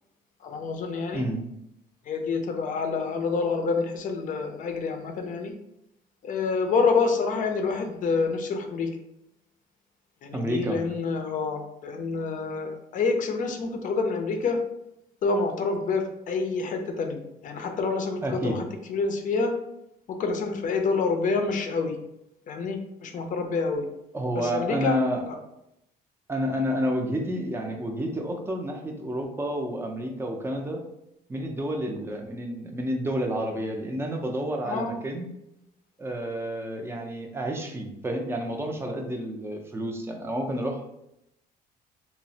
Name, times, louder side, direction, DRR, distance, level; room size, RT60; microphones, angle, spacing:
voice 1, 0.4-1.2 2.1-5.5 6.2-8.9 10.2-14.6 15.2-19.5 20.1-22.0 22.5-23.9 24.4-25.0 25.3-25.4 34.6-35.0, left 4 dB, 50° left, 4 dB, 0.5 m, -27 dB
voice 2, 1.1-1.5 10.3-10.8 18.2-18.6 24.1-25.2 26.3-30.8 31.3-35.3 36.0-40.8, equal, 15° right, 2 dB, 0.5 m, -30 dB
3.0 x 2.0 x 2.7 m, 0.82 s
cardioid pair, 110°, 17 cm